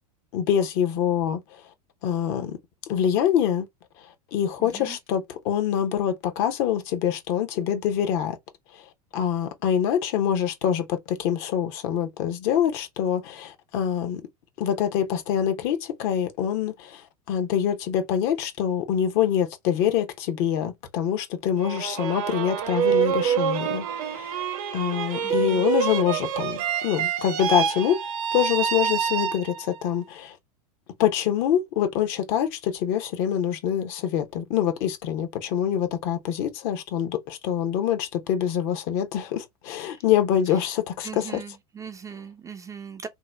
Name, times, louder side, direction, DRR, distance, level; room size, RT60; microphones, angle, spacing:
voice 1, 0.3-1.4 2.0-2.6 2.9-3.7 4.3-8.4 8.8-8.9 9.1-14.2 14.6-17.0 17.3-24.5 24.7-28.0 28.3-30.4 31.0-41.4, left 9 dB, 55° left, 0.8 m, -25 dB
voice 2, 4.6-5.0 25.2-25.7 39.9-40.0 40.5-40.6 41.0-43.1, right 6 dB, 15° right, 0.4 m, -40 dB
sound 1, 21.6-29.8, right 8 dB, 65° right, 0.8 m, -26 dB
2.9 x 2.1 x 3.4 m
hypercardioid pair, 110°, 19 cm